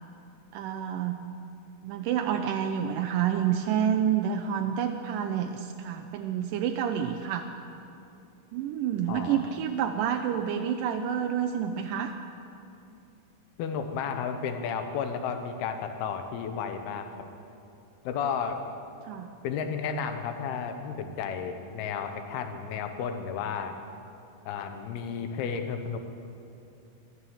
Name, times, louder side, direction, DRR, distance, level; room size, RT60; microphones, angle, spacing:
voice 1, 0.5-1.2 1.8-7.5 8.5-12.1 19.0-19.3, right 9 dB, 85° right, 5 dB, 1.9 m, -28 dB
voice 2, 9.1-9.5 13.6-17.1 18.0-18.6 19.4-23.7 24.5-26.0, left 6 dB, 90° left, 7 dB, 2.9 m, -32 dB
12.5 x 11.5 x 7.2 m, 2.7 s
omnidirectional pair, 4.3 m